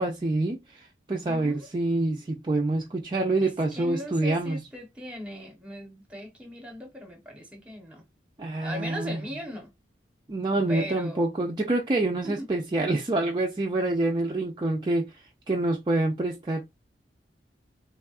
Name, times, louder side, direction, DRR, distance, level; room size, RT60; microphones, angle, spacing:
voice 1, 0.0-4.6 8.4-9.2 10.3-15.1 15.5-16.6, right 2 dB, 25° right, 0.4 m, -26 dB
voice 2, 1.2-1.7 3.4-8.0 8.6-9.7 10.7-11.3 12.2-12.5, left 1 dB, 5° right, 0.9 m, -38 dB
3.4 x 2.2 x 2.3 m
head